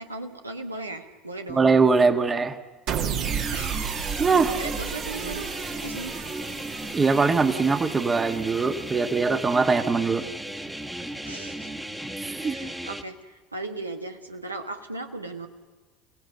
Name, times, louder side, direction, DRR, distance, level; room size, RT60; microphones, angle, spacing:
voice 1, 0.0-1.6 3.5-4.0 4.6-5.5 5.8-6.2 11.2-11.7 12.4-15.5, right 2 dB, 90° right, 5 dB, 1.2 m, -37 dB
voice 2, 1.5-2.6 4.2-4.5 6.9-10.2 12.2-12.5, right 4 dB, 20° right, 7 dB, 1.5 m, -22 dB
sound 1, 2.9-9.2, right 8 dB, 50° right, 2.1 m, -33 dB
sound 2, 3.2-13.0, right 1 dB, 5° right, 1.6 m, -36 dB
28.5 x 17.0 x 6.9 m, 1.4 s
figure-of-eight pair, 70°, 0 cm